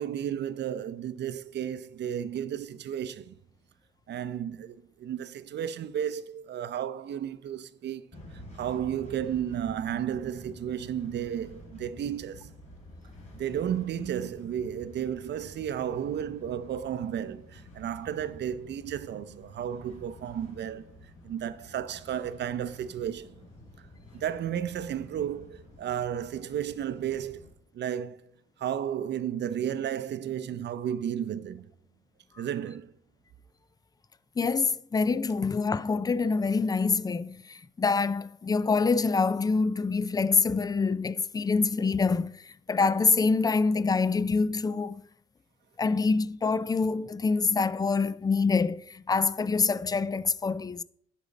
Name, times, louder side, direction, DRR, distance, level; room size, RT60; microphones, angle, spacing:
voice 1, 0.0-3.4 4.1-8.1 8.3-12.5 13.3-21.0 21.2-23.4 24.1-27.5 27.7-28.2 28.6-31.7 32.4-32.9, right 9 dB, 60° right, 0.6 m, -33 dB
sound 1, 8.1-27.5, left 1 dB, 35° left, 3.6 m, -50 dB
voice 2, 34.4-45.0 45.8-50.8, left 4 dB, 20° left, 0.4 m, -26 dB
10.0 x 5.1 x 4.0 m
cardioid pair, 90°, 20 cm